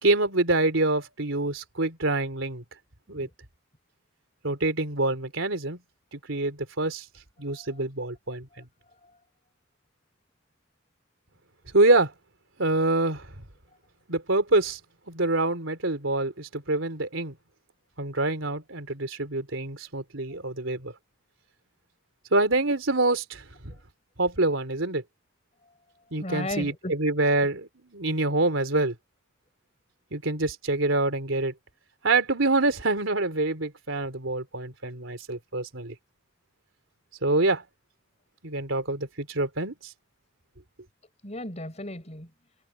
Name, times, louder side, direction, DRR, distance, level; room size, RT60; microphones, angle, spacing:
voice 1, 0.0-2.6 3.1-3.3 4.4-5.8 6.1-7.0 7.4-8.5 11.7-12.1 12.6-13.3 14.1-14.8 15.1-17.4 18.0-20.9 22.3-23.4 24.2-25.0 26.1-28.9 30.1-31.5 32.0-35.9 37.2-37.6 38.4-39.7, right 2 dB, 85° right, 3.5 m, -26 dB
voice 2, 7.5-7.8 8.3-8.4 9.0-9.1 26.2-27.0 41.2-42.3, left 1 dB, 35° left, 5.3 m, -36 dB
head